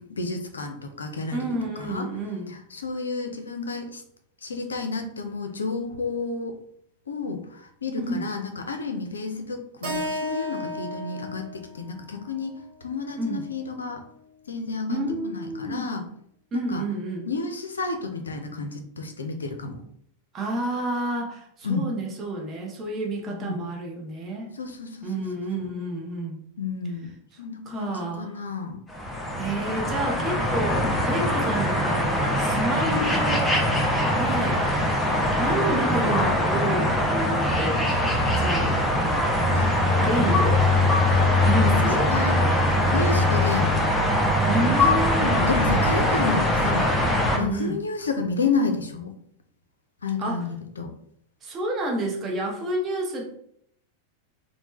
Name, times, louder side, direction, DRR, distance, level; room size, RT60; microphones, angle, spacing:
voice 1, 0.0-1.5 1.8-2.1 2.7-4.0 4.4-6.6 7.1-12.5 12.8-14.0 14.5-16.0 16.5-16.8 17.3-19.8 21.6-21.9 23.3-23.6 24.6-25.1 25.6-25.7 26.6-27.1 27.4-28.8 32.9-33.2 39.5-39.7 42.1-42.5 42.9-43.9 45.2-46.9 47.4-49.1 50.0-50.9, left 4 dB, 70° left, 5 dB, 0.4 m, -31 dB
voice 2, 1.3-2.5 8.0-8.3 13.2-13.5 14.9-15.9 16.5-17.3 20.3-24.5 25.0-26.5 27.7-28.4 29.4-33.5 34.2-34.7 35.4-37.9 38.4-38.9 40.0-40.7 41.4-42.1 44.5-45.5 47.3-47.8 50.2-50.5 51.4-53.4, right 1 dB, 25° right, 0 dB, 0.7 m, -29 dB
Keyboard (musical), 9.8-14.1, left 1 dB, 55° right, 1.0 m, -35 dB
sound 1, 28.9-47.4, left 1 dB, 10° left, 0.5 m, -22 dB
3.1 x 2.1 x 3.0 m, 0.68 s
figure-of-eight pair, 90°, 0 cm